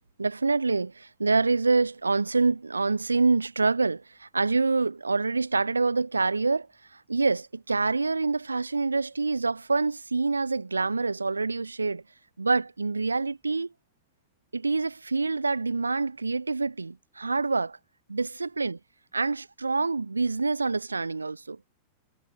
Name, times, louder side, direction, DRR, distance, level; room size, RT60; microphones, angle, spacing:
voice 1, 0.2-6.7 6.9-12.0 12.4-13.7 14.5-17.7 18.1-18.8 19.1-21.8, right 3 dB, 80° right, 0.7 m, -26 dB
figure-of-eight pair, 90°, 0 cm